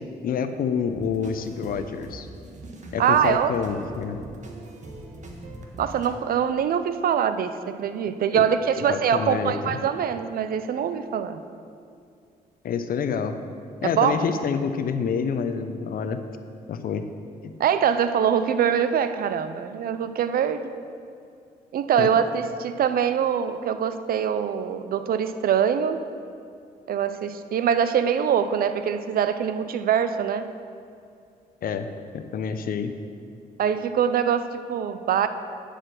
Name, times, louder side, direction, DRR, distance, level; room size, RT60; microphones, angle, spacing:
voice 1, 0.0-2.3 2.9-4.2 8.3-8.5 8.8-9.8 12.6-13.4 13.8-16.2 16.7-17.0 17.4-17.5 22.0-22.1 31.6-31.9 32.1-32.9, left 6 dB, 65° left, 9 dB, 0.7 m, -27 dB
sound 1, 0.9-6.1, right 1 dB, 50° right, 1.4 m, -41 dB
voice 2, 3.0-3.5 5.8-11.4 13.8-14.3 17.6-20.7 21.7-26.0 26.9-30.5 33.6-35.3, right 8 dB, 65° right, 11 dB, 0.6 m, -23 dB
9.8 x 5.0 x 6.0 m, 2.3 s
supercardioid pair, 60°, 16 cm